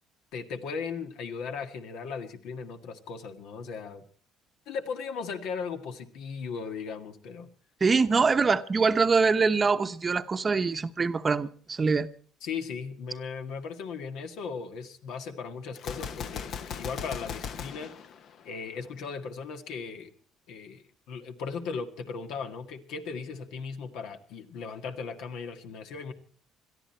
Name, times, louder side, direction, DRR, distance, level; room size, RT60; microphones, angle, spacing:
voice 1, 0.3-4.0 4.6-7.5 12.4-17.9 18.4-20.1 20.5-26.1, left 5 dB, 75° left, 1.9 m, -37 dB
voice 2, 7.8-12.1, right 4 dB, 25° right, 0.9 m, -24 dB
Gunshot gunfire, 15.8-18.9, left 7 dB, 60° left, 1.0 m, -38 dB
21.5 x 13.5 x 4.4 m
cardioid pair, 105°, 0 cm